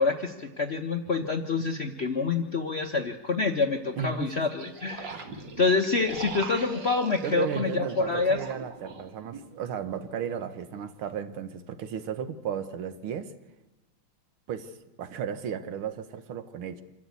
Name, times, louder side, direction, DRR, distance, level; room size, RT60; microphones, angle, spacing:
voice 1, 0.0-5.2 5.6-8.4, left 4 dB, 55° left, 0.7 m, -27 dB
sound 1, 1.0-1.1 3.9-9.5, right 4 dB, 60° right, 2.2 m, -41 dB
voice 2, 3.9-4.4 5.1-5.2 7.2-13.3 14.5-16.8, right 7 dB, 80° right, 1.9 m, -34 dB
26.0 x 12.5 x 8.3 m
omnidirectional pair, 2.3 m